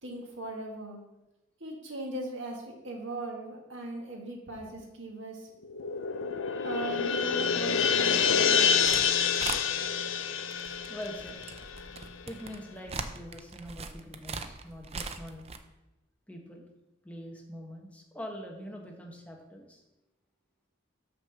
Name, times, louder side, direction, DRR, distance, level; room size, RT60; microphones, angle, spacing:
voice 1, 0.0-1.0 1.6-5.5 6.6-8.7, right 1 dB, 75° right, 0 dB, 1.8 m, -39 dB
sound 1, 5.6-12.2, left 7 dB, 85° left, 0.6 m, -27 dB
sound 2, 8.3-9.0 9.3-9.6 10.4-15.6, right 5 dB, 30° right, 0.5 m, -39 dB
voice 2, 10.9-11.4 12.3-15.4 16.3-16.7 17.0-19.8, equal, 5° left, 1 dB, 1.0 m, -43 dB
6.0 x 5.3 x 6.8 m, 0.97 s
head